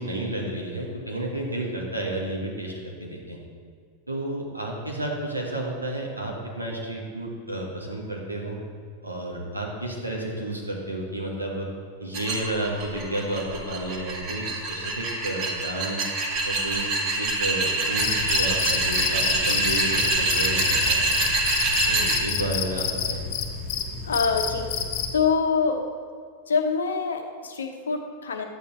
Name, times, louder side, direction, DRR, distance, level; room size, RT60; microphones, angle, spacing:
voice 1, 0.0-3.4 4.1-8.6 9.0-11.7 12.0-16.0 16.4-21.2 21.9-23.2, right 1 dB, 85° right, -2 dB, 1.9 m, -31 dB
sound 1, 12.1-22.2, right 2 dB, 40° right, 1.9 m, -25 dB
Cricket, 18.0-25.2, left 6 dB, 45° left, 1.1 m, -29 dB
voice 2, 24.0-24.7 25.1-25.8 26.5-28.5, left 5 dB, 70° left, 4 dB, 1.1 m, -25 dB
11.5 x 8.6 x 4.4 m, 2.1 s
figure-of-eight pair, 90°, 0 cm